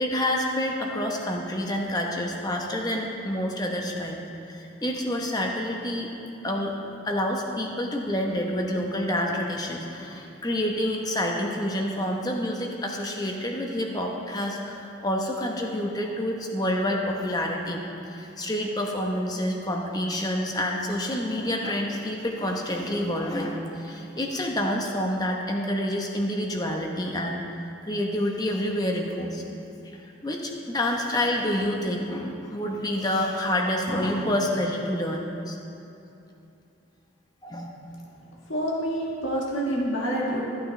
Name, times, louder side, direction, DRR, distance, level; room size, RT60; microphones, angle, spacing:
voice 1, 0.0-6.1 6.4-6.7 7.0-17.8 18.1-27.4 27.8-29.4 29.8-35.6 37.4-37.7, left 1 dB, 20° left, 1 dB, 0.9 m, -28 dB
voice 2, 38.5-40.4, equal, 90° left, -4 dB, 1.9 m, -27 dB
14.0 x 8.6 x 3.3 m, 2.7 s
head